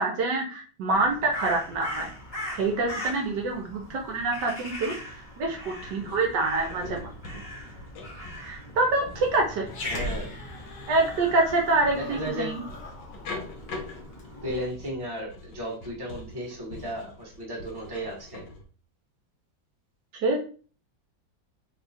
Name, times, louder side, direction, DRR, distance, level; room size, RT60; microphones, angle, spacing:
voice 1, 0.0-2.1 2.6-4.9 5.4-7.4 8.4-9.7 10.9-12.6 20.2-20.4, right 2 dB, 70° right, 0 dB, 1.3 m, -26 dB
Crow, 0.9-14.7, equal, 25° left, 1.0 m, -42 dB
sound 1, 6.0-18.7, left 2 dB, 70° left, 1.4 m, -44 dB
Growling, 9.7-14.3, left 1 dB, 55° left, 1.1 m, -39 dB
voice 2, 9.8-10.4 11.9-12.5 14.4-18.4, equal, 15° right, -3 dB, 1.0 m, -34 dB
3.5 x 2.3 x 4.1 m, 0.39 s
omnidirectional pair, 2.0 m